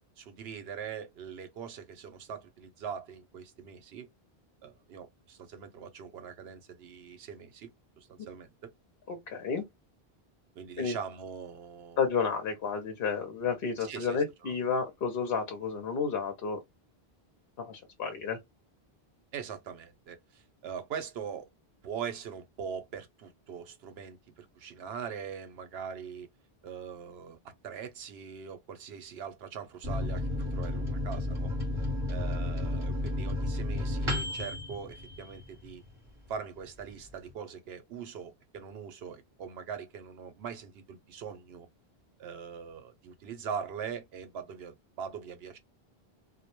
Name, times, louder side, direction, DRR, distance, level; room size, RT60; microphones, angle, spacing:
voice 1, 0.2-4.1 4.6-7.7 8.0-8.7 10.6-12.0 13.8-14.5 19.3-21.5 21.8-26.3 26.6-31.5 32.1-35.8 36.3-41.7 42.2-45.6, right 7 dB, 80° right, 0.8 m, -42 dB
voice 2, 9.1-9.6 10.8-11.0 12.0-16.6 17.6-18.4, left 5 dB, 70° left, 0.8 m, -31 dB
Microwave oven, 29.8-35.9 36.3-36.4 36.7-37.3, left 2 dB, 30° right, 1.0 m, -32 dB
2.1 x 2.1 x 2.9 m
omnidirectional pair, 1.0 m